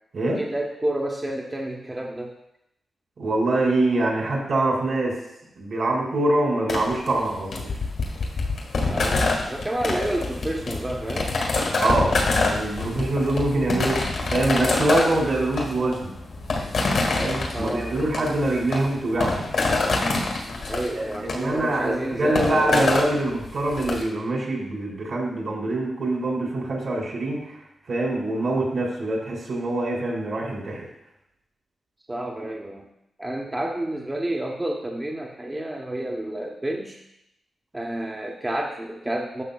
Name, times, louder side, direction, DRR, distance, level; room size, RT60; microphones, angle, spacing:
voice 1, 0.4-2.3 8.9-11.3 17.5-18.0 20.7-22.9 32.1-32.8 33.2-37.0 37.7-39.4, right 1 dB, 20° right, 0 dB, 0.8 m, -29 dB
voice 2, 3.2-5.2 5.6-7.7 11.8-16.1 17.1-19.5 20.9-27.6 27.9-30.9, right 2 dB, 65° right, -2 dB, 2.6 m, -24 dB
sound 1, 6.7-24.0, left 3 dB, 75° left, 1.6 m, -26 dB
11.0 x 6.1 x 2.3 m, 0.82 s
cardioid pair, 75°, 0 cm